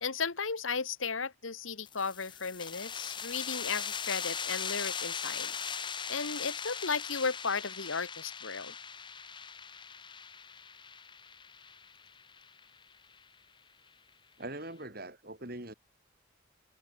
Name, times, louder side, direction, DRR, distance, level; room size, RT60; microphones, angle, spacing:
voice 1, 0.0-5.5 5.9-8.7, left 5 dB, 90° left, 1.6 m, -35 dB
sound 1, 1.9-13.2, left 7 dB, 25° left, 1.0 m, -40 dB
voice 2, 14.4-15.7, right 1 dB, 50° right, 4.5 m, -42 dB
head